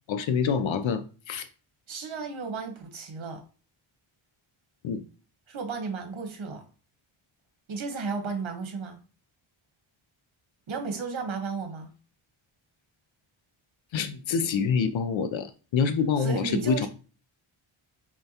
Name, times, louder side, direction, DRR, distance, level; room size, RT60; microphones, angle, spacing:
voice 1, 0.1-1.4 4.8-5.0 13.9-16.9, left 6 dB, 70° left, 0.5 m, -26 dB
voice 2, 1.9-3.4 5.5-6.6 7.7-9.0 10.7-11.9 16.2-16.9, right 4 dB, 70° right, 1.1 m, -33 dB
5.5 x 2.2 x 2.8 m
wide cardioid pair, 115°, 49 cm